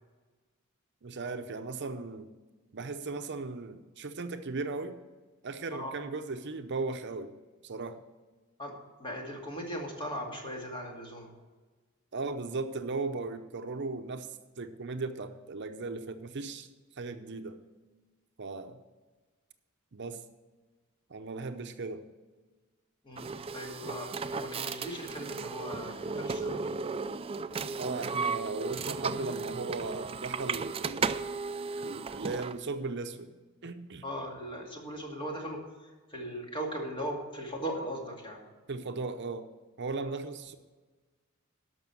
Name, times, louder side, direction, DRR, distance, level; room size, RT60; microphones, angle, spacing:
voice 1, 1.0-2.3 2.7-5.0 5.4-7.3 7.6-8.0 12.1-14.3 14.6-16.7 17.0-17.6 18.4-18.8 19.9-20.2 21.1-22.0 27.8-31.3 31.8-33.3 33.6-34.0 38.7-39.5 39.8-40.5, right 3 dB, 55° right, 8 dB, 0.7 m, -37 dB
voice 2, 9.0-11.3 23.0-26.7 34.0-38.4, equal, 25° left, 0 dB, 2.3 m, -39 dB
sound 1, 23.2-32.6, right 4 dB, 25° right, 0.4 m, -35 dB
12.5 x 5.9 x 7.7 m, 1.3 s
head